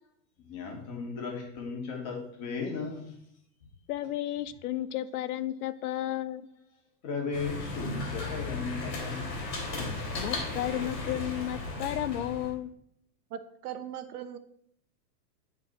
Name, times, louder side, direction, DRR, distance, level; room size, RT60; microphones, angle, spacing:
voice 1, 0.4-3.2 5.5-5.6 7.0-9.9, left 5 dB, 30° left, 1 dB, 2.0 m, -36 dB
voice 2, 3.9-6.5 10.2-12.7, left 13 dB, 70° left, 15 dB, 0.6 m, -33 dB
sound 1, 7.3-12.5, left 2 dB, 85° left, 3.1 m, -35 dB
voice 3, 13.3-14.4, right 9 dB, 70° right, 10 dB, 0.8 m, -39 dB
9.5 x 4.5 x 3.9 m, 0.72 s
supercardioid pair, 145°, 48 cm